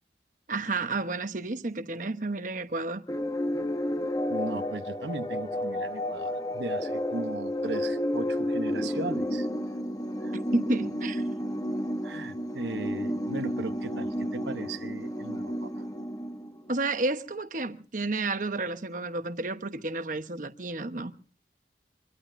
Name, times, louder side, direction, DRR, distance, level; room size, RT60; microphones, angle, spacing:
voice 1, 0.5-3.0 10.5-11.3 16.7-21.1, right 2 dB, 45° right, 1.0 m, -31 dB
sound 1, 3.1-16.8, equal, 20° left, 1.1 m, -31 dB
voice 2, 4.3-9.5 10.2-10.3 12.0-15.9, right 3 dB, 85° right, 1.0 m, -37 dB
25.0 x 22.5 x 2.6 m
head